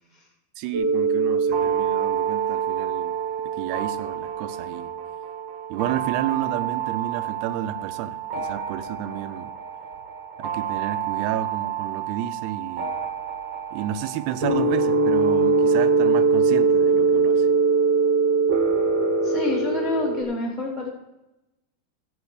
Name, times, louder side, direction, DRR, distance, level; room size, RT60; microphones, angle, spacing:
voice 1, 0.6-3.1 3.6-4.9 5.7-9.5 10.4-12.9 13.7-17.5, right 11 dB, 80° right, 12 dB, 2.6 m, -31 dB
sound 1, 0.7-20.2, right 4 dB, 55° right, 1.2 m, -24 dB
voice 2, 19.2-20.9, left 3 dB, 30° right, -3 dB, 0.8 m, -28 dB
14.5 x 7.9 x 4.9 m, 0.96 s
omnidirectional pair, 4.8 m